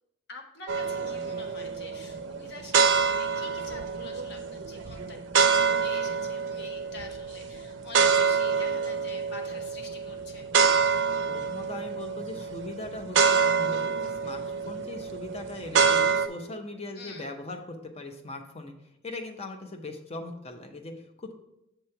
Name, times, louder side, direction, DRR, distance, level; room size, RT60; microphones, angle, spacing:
voice 1, 0.3-10.5 16.9-17.3, left 3 dB, 55° left, 2 dB, 1.1 m, -46 dB
sound 1, 0.7-16.3, right 6 dB, 65° right, 0.5 m, -27 dB
voice 2, 11.3-18.7 19.0-21.3, left 2 dB, 30° left, 6 dB, 0.7 m, -40 dB
7.6 x 3.1 x 5.6 m, 0.85 s
head